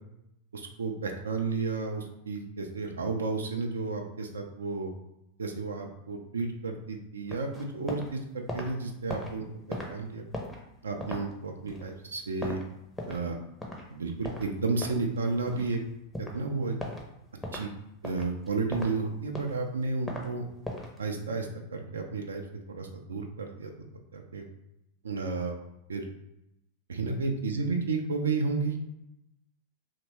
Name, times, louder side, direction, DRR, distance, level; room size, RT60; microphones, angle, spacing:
voice 1, 0.5-4.9 5.4-9.5 9.9-10.2 10.8-12.6 13.1-13.4 13.9-15.8 16.2-16.7 17.5-17.7 18.0-20.5 21.0-22.4 22.7-23.7 24.1-24.4 25.0-25.6 25.9-26.0 26.9-28.7, right 3 dB, 70° right, 3 dB, 0.3 m, -32 dB
sound 1, 7.3-8.1 8.4-13.3 13.6-13.8 14.2-15.8 16.1-16.4 16.8-17.1 17.4-17.7 18.0-19.0 19.3-20.3 20.6-21.0, left 1 dB, 5° left, 0.5 m, -38 dB
2.7 x 2.1 x 3.0 m, 0.85 s
figure-of-eight pair, 90°, 0 cm